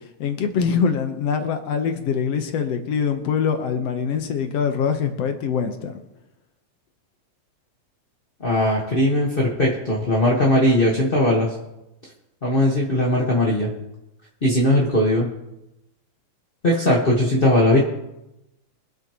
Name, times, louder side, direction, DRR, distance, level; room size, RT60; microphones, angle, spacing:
voice 1, 0.2-6.0, left 6 dB, 65° left, 6 dB, 2.0 m, -23 dB
voice 2, 8.4-11.5 12.4-13.7 14.4-15.3 16.6-17.8, left 1 dB, 30° left, -4 dB, 0.9 m, -19 dB
24.0 x 8.3 x 3.0 m, 0.90 s
omnidirectional pair, 3.3 m